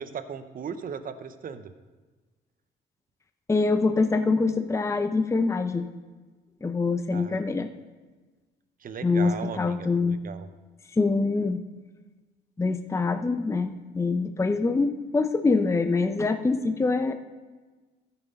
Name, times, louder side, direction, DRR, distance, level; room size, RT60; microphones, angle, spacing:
voice 1, 0.0-1.7 7.1-7.5 8.8-10.5, right 6 dB, 45° right, 10 dB, 0.8 m, -37 dB
voice 2, 3.5-5.9 6.6-7.7 9.0-10.2 10.9-11.6 12.6-17.1, left 3 dB, 15° left, 8 dB, 0.6 m, -24 dB
14.0 x 5.7 x 5.3 m, 1.3 s
cardioid pair, 90°, 20 cm